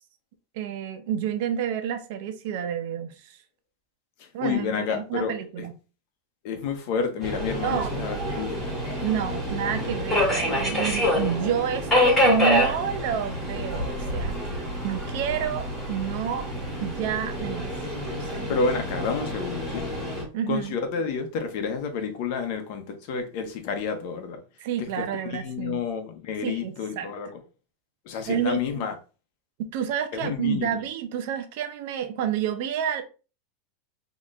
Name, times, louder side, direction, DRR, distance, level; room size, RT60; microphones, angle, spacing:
voice 1, 0.5-3.4 4.3-5.7 7.6-7.9 9.0-16.5 16.8-17.7 18.2-18.5 20.3-20.7 24.6-25.8 26.4-27.1 28.3-28.9 29.6-33.0, right 9 dB, 50° right, 0.6 m, -29 dB
voice 2, 4.4-5.3 6.4-8.7 18.5-19.9 20.5-24.4 24.8-27.3 28.1-28.9 30.1-30.8, left 5 dB, 45° left, 0.8 m, -30 dB
Subway metro underground, 7.2-20.2, left 1 dB, 10° left, 1.9 m, -27 dB
4.2 x 2.9 x 2.5 m
supercardioid pair, 175°, 0 cm